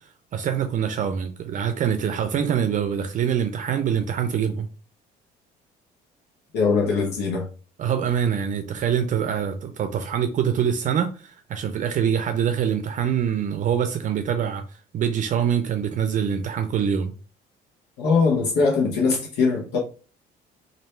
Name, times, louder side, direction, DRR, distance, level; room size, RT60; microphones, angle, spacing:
voice 1, 0.3-4.7 7.8-14.6 14.9-17.1, right 8 dB, 50° right, 0.5 m, -24 dB
voice 2, 6.5-7.5 18.0-19.8, left 4 dB, 85° left, 1.0 m, -21 dB
3.2 x 2.6 x 4.3 m
cardioid pair, 110°, 17 cm